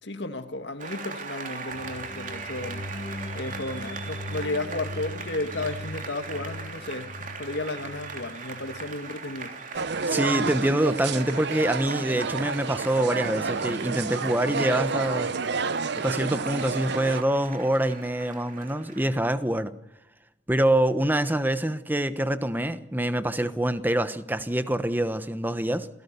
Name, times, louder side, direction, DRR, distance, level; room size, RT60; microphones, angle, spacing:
voice 1, 0.0-2.8 3.3-9.5, left 2 dB, 60° left, 2.2 m, -33 dB
Applause, 0.8-19.1, right 4 dB, 40° right, 3.2 m, -40 dB
sound 1, 1.7-9.0, left 1 dB, 25° left, 1.3 m, -39 dB
sound 2, 9.7-17.2, right 4 dB, 60° right, 0.7 m, -30 dB
voice 2, 10.1-15.3 15.9-19.7 20.5-25.9, right 1 dB, 10° right, 1.1 m, -25 dB
27.5 x 17.5 x 6.9 m
head